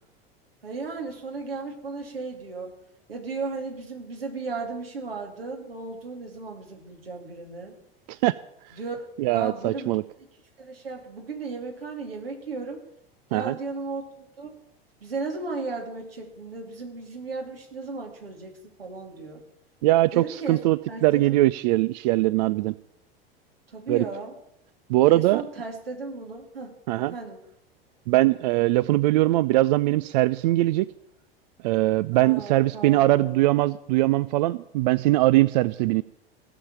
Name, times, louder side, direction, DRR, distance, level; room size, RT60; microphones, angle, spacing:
voice 1, 0.6-2.7 3.1-7.8 8.7-10.0 10.6-12.8 13.3-14.5 15.0-19.4 20.1-20.6 20.9-21.4 23.7-24.3 25.1-26.7 27.1-27.4 32.1-33.4, right 3 dB, 70° right, 3 dB, 2.8 m, -35 dB
voice 2, 9.2-10.0 13.3-13.5 19.8-22.7 23.9-24.0 24.9-25.4 26.9-27.1 28.1-30.9 31.6-36.0, right 17 dB, 45° right, 18 dB, 0.4 m, -21 dB
16.0 x 7.1 x 9.1 m, 0.79 s
figure-of-eight pair, 80°, 30 cm